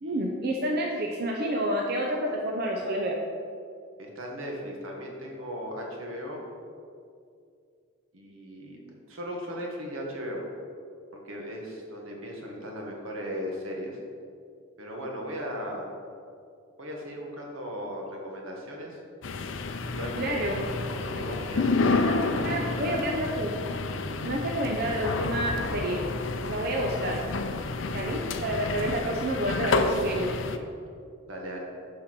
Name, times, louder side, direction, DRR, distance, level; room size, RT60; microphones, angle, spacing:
voice 1, 0.0-3.2 20.1-20.6 21.8-23.8 24.2-26.0 26.5-27.2 27.9-30.3, right 1 dB, 50° right, 0 dB, 0.7 m, -29 dB
voice 2, 4.0-6.4 8.1-8.8 9.1-10.4 11.1-14.0 14.8-15.9 16.8-19.0 19.9-20.6 20.9-23.3 31.3-31.6, equal, 80° right, 0 dB, 1.6 m, -37 dB
sound 1, 19.2-30.6, left 3 dB, 65° left, 0.5 m, -30 dB
6.6 x 5.6 x 6.0 m, 2.4 s
head